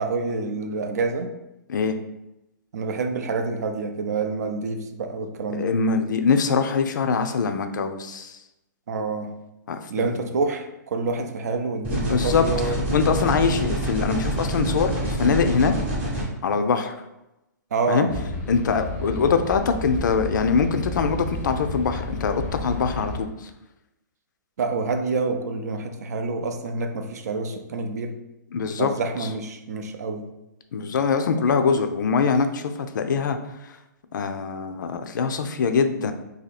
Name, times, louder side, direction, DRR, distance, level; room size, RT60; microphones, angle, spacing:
voice 1, 0.0-1.3 2.7-5.7 8.9-9.3 9.9-12.8 17.7-18.1 24.6-28.2 28.8-30.3, right 4 dB, 55° right, 6 dB, 0.5 m, -27 dB
voice 2, 5.5-8.4 9.7-10.2 11.9-12.4 12.9-15.7 16.4-17.0 17.9-18.1 18.5-23.5 28.5-28.9 30.7-33.4 34.1-36.1, left 5 dB, 75° left, 8 dB, 0.4 m, -23 dB
sound 1, 11.8-16.2, right 1 dB, 20° right, 0.8 m, -26 dB
sound 2, 18.1-23.2, left 1 dB, 20° left, 0.5 m, -32 dB
2.8 x 2.7 x 4.0 m, 0.92 s
hypercardioid pair, 170°, 10 cm